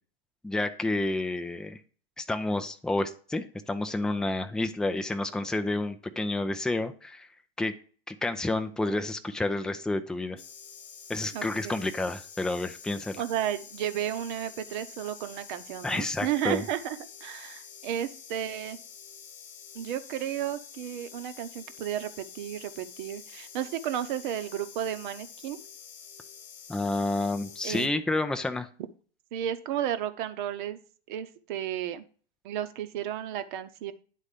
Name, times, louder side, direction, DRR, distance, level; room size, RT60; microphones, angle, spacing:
voice 1, 0.4-1.8 2.2-7.3 7.6-7.7 8.1-10.4 11.1-13.2 15.8-16.6 26.7-28.7, left 2 dB, ahead, 7 dB, 0.5 m, -30 dB
sound 1, 10.4-27.9, left 7 dB, 25° left, 1.2 m, -48 dB
voice 2, 11.3-11.8 13.2-18.8 19.7-25.6 27.6-27.9 29.3-30.8 31.1-32.0 32.4-33.9, right 10 dB, 50° right, 10 dB, 0.9 m, -33 dB
10.0 x 4.1 x 5.0 m, 0.41 s
figure-of-eight pair, 100°, 32 cm